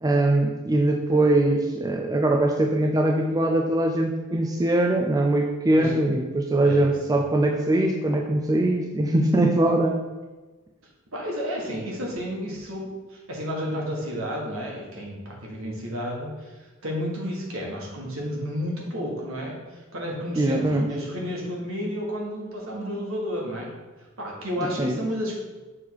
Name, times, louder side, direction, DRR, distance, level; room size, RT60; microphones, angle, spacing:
voice 1, 0.0-10.0 20.4-20.9 24.8-25.0, right 1 dB, 15° right, 1 dB, 0.3 m, -22 dB
voice 2, 5.7-6.0 6.6-6.9 11.1-23.7 24.2-25.4, equal, 70° right, -2 dB, 1.6 m, -31 dB
6.4 x 3.6 x 4.7 m, 1.2 s
head